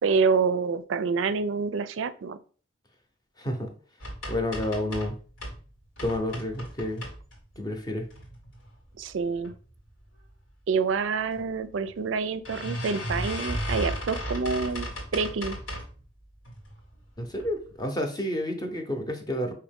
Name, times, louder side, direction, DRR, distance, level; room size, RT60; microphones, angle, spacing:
voice 1, 0.0-2.4 9.0-9.5 10.7-15.6, right 5 dB, 75° right, 13 dB, 0.4 m, -27 dB
voice 2, 3.4-3.7 4.3-5.2 6.0-7.0 7.6-8.1 17.2-19.5, left 1 dB, 20° left, 4 dB, 0.7 m, -30 dB
sound 1, 4.0-5.6 6.0-7.6 8.1-8.7 9.1-9.5 9.8-9.9 10.2-10.3 11.3-11.4 11.8-11.9 12.5-16.0 16.5-16.9 17.3-17.5 17.8-17.9, equal, 90° left, 1.7 m, -35 dB
4.8 x 2.8 x 3.5 m, 0.40 s
head